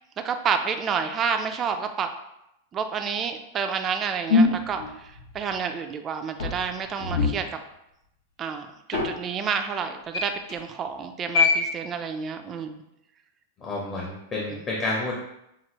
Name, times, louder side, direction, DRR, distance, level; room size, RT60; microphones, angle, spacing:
voice 1, 0.2-2.1 2.7-7.6 8.4-12.8 14.5-14.6, right 6 dB, 25° right, 6 dB, 0.4 m, -29 dB
sound 1, 4.3-5.5 6.4-7.4 8.9-9.1 10.1-10.5 11.3-11.7, left 4 dB, 80° left, 1.3 m, -22 dB
voice 2, 13.6-15.1, left 2 dB, 25° left, -4 dB, 0.8 m, -29 dB
6.0 x 2.4 x 2.9 m, 0.84 s
supercardioid pair, 155°, 0 cm